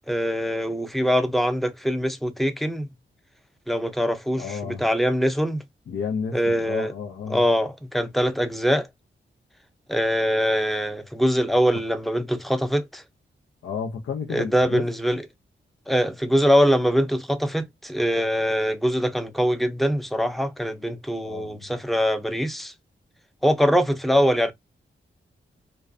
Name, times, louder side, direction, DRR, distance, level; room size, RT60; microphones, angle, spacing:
voice 1, 0.1-2.9 3.7-5.6 6.3-6.9 7.3-8.9 9.9-13.0 14.3-15.2 15.9-22.7 23.4-24.5, equal, ahead, 0.6 m, -23 dB
voice 2, 4.4-4.8 5.9-7.4 13.6-14.9 21.2-21.6, left 6 dB, 80° left, 0.6 m, -31 dB
2.4 x 2.2 x 2.3 m
cardioid pair, 45°, 21 cm